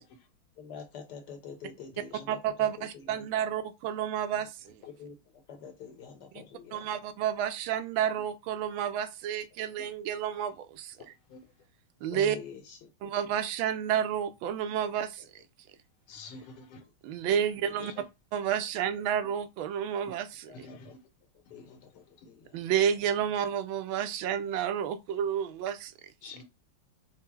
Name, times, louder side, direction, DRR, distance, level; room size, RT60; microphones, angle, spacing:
voice 1, 0.6-2.3 2.6-3.2 4.9-5.1 5.5-6.8 12.1-12.8 17.8-17.9 20.5-20.9 21.5-21.9 22.3-22.6, left 6 dB, 65° left, 1.2 m, -46 dB
voice 2, 2.3-4.8 6.3-6.4 6.7-11.1 12.0-12.4 13.0-15.3 17.0-17.9 18.3-20.7 22.5-25.9 26.2-26.3, right 9 dB, 80° right, 1.4 m, -30 dB
voice 3, 16.1-16.8 20.5-21.0 26.2-26.4, left 3 dB, 80° left, 1.8 m, -46 dB
4.6 x 2.0 x 4.4 m
omnidirectional pair, 2.3 m